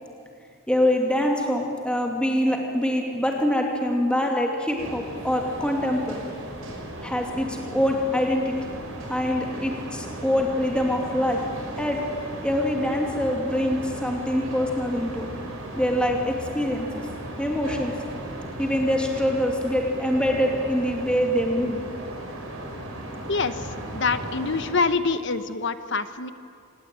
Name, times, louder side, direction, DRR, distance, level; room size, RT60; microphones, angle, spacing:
voice 1, 0.7-6.2 7.0-8.5 9.1-11.4 11.8-12.0 12.4-15.4 15.8-17.1 17.4-17.9 18.6-21.8, equal, 5° left, 0 dB, 2.4 m, -24 dB
sound 1, 4.8-24.7, right 1 dB, 75° right, 5.9 m, -36 dB
voice 2, 23.3-26.3, left 4 dB, 55° left, 11 dB, 1.1 m, -26 dB
25.5 x 20.0 x 9.0 m, 2.4 s
head